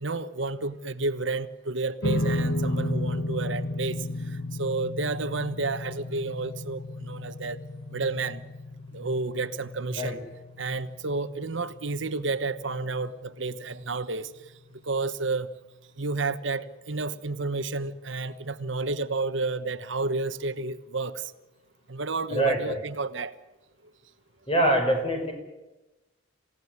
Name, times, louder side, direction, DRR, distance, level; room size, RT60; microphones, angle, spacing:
voice 1, 0.0-4.1 4.6-7.6 7.9-8.4 8.9-10.2 10.6-14.3 14.8-15.5 16.0-21.2 21.9-23.3, right 3 dB, 70° right, 1.1 m, -31 dB
sound 1, 2.0-14.5, left 1 dB, 65° left, 1.3 m, -34 dB
voice 2, 22.3-22.8 24.5-25.3, right 1 dB, 30° left, 6.1 m, -24 dB
28.0 x 17.0 x 9.5 m
head